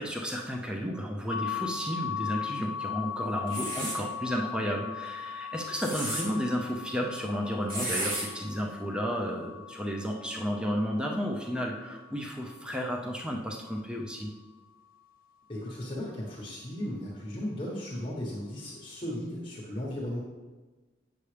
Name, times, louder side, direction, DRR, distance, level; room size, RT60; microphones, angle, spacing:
voice 1, 0.0-14.3, equal, 5° right, 0 dB, 0.6 m, -32 dB
sound 1, 1.3-13.0, left 8 dB, 50° left, 0.8 m, -39 dB
sound 2, 3.5-4.0 5.6-6.2 7.7-8.2, right 1 dB, 50° right, 2.8 m, -32 dB
voice 2, 15.5-20.2, left 1 dB, 30° left, -4 dB, 1.3 m, -36 dB
8.9 x 6.9 x 3.3 m, 1.3 s
head